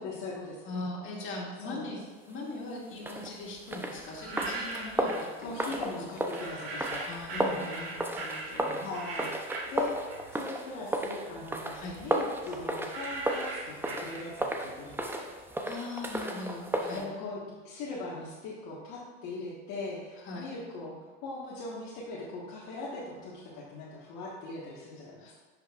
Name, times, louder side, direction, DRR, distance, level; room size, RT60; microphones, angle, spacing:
voice 1, 0.0-0.8 1.6-1.8 5.4-7.6 8.7-9.3 9.7-10.0 10.3-15.4 16.9-17.4 17.6-25.3, left 3 dB, 60° left, -6 dB, 1.5 m, -40 dB
voice 2, 0.6-2.0 2.3-6.0 6.4-6.6 7.0-8.9 11.7-12.0 15.7-17.1 20.2-20.5 25.2-25.3, left 2 dB, 40° left, -4 dB, 2.3 m, -41 dB
sound 1, 3.0-17.1, right 1 dB, 5° right, 0.6 m, -34 dB
sound 2, 4.0-5.3 6.3-10.5 10.9-14.6, right 3 dB, 85° right, 1.5 m, -40 dB
9.9 x 5.7 x 2.5 m, 1.3 s
supercardioid pair, 110°, 31 cm